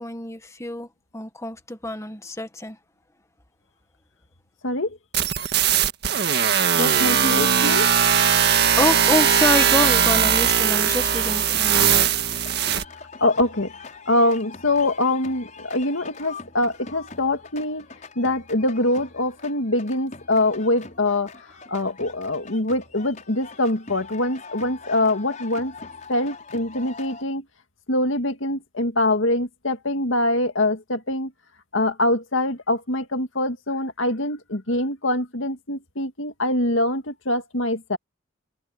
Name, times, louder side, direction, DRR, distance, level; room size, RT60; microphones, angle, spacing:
voice 1, 0.0-2.8 8.8-12.1, left 1 dB, 15° left, 1.4 m, -27 dB
voice 2, 4.6-5.0 6.7-7.9 13.2-13.7 14.1-17.9 18.2-21.3 21.7-25.7 26.1-27.4 27.9-31.3 31.7-38.0, left 1 dB, 70° left, 2.1 m, -24 dB
sound 1, 5.1-12.8, right 8 dB, 55° right, 1.9 m, -19 dB
sound 2, 10.7-27.2, left 4 dB, 40° left, 5.8 m, -42 dB
head